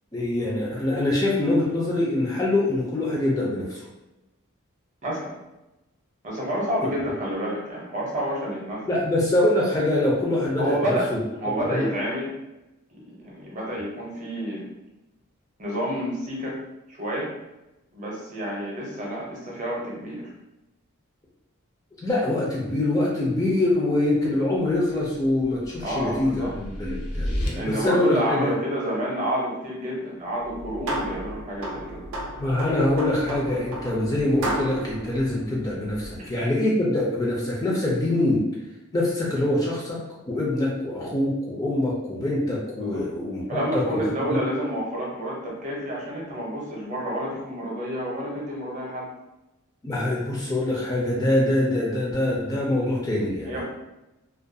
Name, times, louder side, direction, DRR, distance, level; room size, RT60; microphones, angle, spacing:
voice 1, 0.1-3.9 8.9-11.2 11.7-11.9 22.0-28.5 32.4-38.4 38.9-40.0 40.3-43.8 44.3-44.4 49.8-53.6, left 1 dB, 15° left, -4 dB, 0.4 m, -24 dB
voice 2, 6.2-8.8 10.6-11.1 11.4-12.3 12.9-14.6 15.6-16.6 17.0-17.3 17.9-20.2 25.8-26.5 27.5-32.0 36.2-36.3 42.8-43.0 43.5-49.0 53.4-53.6, equal, 35° right, -4 dB, 0.6 m, -29 dB
sound 1, 25.1-27.5, equal, 80° left, 0.5 m, -32 dB
sound 2, 30.4-36.3, right 1 dB, 75° right, 0.5 m, -34 dB
2.3 x 2.2 x 2.6 m, 0.98 s
head